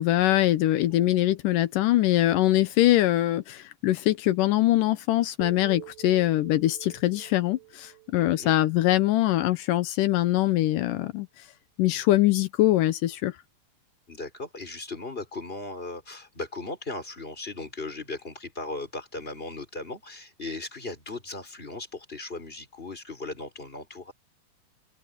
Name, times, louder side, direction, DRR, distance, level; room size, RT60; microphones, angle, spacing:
voice 1, 0.0-11.3 11.8-13.3, left 15 dB, 85° left, 2.5 m, -23 dB
sound 1, 5.4-9.5, right 19 dB, 85° right, 6.3 m, -47 dB
voice 2, 8.2-8.6 14.1-24.1, left 2 dB, 15° left, 5.1 m, -37 dB
open air
omnidirectional pair, 3.8 m